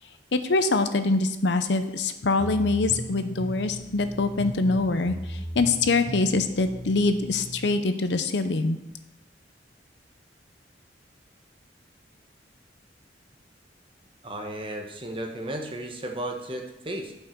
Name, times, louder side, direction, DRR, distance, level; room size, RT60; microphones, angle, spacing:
voice 1, 0.3-8.8, left 3 dB, 70° left, 10 dB, 0.7 m, -24 dB
sound 1, 2.4-7.7, equal, 30° left, 3.3 m, -37 dB
voice 2, 14.2-17.1, right 1 dB, 30° right, 2 dB, 1.2 m, -34 dB
11.5 x 5.5 x 4.5 m, 0.93 s
head